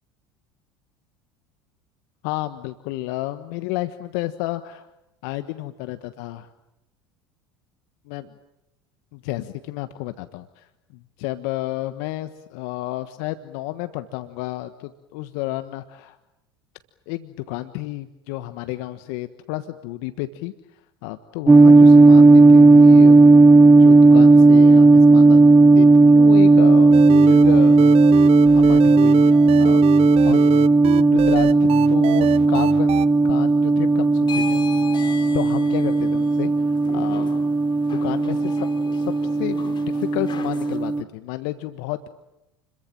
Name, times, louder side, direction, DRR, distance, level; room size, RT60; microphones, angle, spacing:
voice 1, 2.2-4.9 5.2-6.5 8.1-8.2 9.1-16.2 17.1-23.4 23.8-27.8 28.5-29.8 30.2-30.4 31.0-33.0 33.2-37.3 37.9-38.7 38.9-39.1 39.4-39.7 39.9-42.1, left 16 dB, 65° left, 11 dB, 1.4 m, -31 dB
sound 1, 21.5-41.0, right 3 dB, 15° right, 1.1 m, -14 dB
sound 2, 26.9-33.1, right 14 dB, 50° right, 0.9 m, -27 dB
sound 3, 34.2-40.8, left 6 dB, 35° left, 5.7 m, -38 dB
30.0 x 22.5 x 7.5 m, 0.95 s
hypercardioid pair, 75°, 13 cm